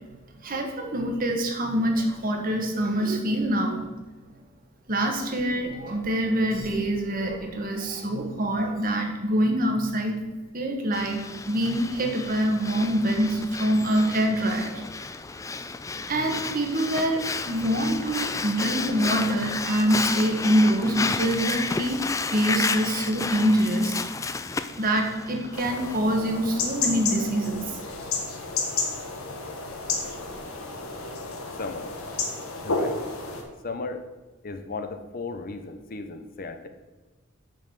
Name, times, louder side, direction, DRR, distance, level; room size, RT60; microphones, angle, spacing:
voice 1, 0.4-3.9 4.9-10.2 10.5-14.8 16.1-22.0 22.3-24.0 24.8-27.8, right 1 dB, 40° right, 3 dB, 1.4 m, -25 dB
Breathing, 10.9-26.0, left 4 dB, 15° left, 0.3 m, -32 dB
sound 1, 25.5-33.4, left 4 dB, 90° left, 1.5 m, -31 dB
voice 2, 31.6-31.9 32.6-33.0 33.6-34.0 34.4-36.7, left 3 dB, 45° left, 7 dB, 0.7 m, -35 dB
6.5 x 6.4 x 6.6 m, 1.3 s
head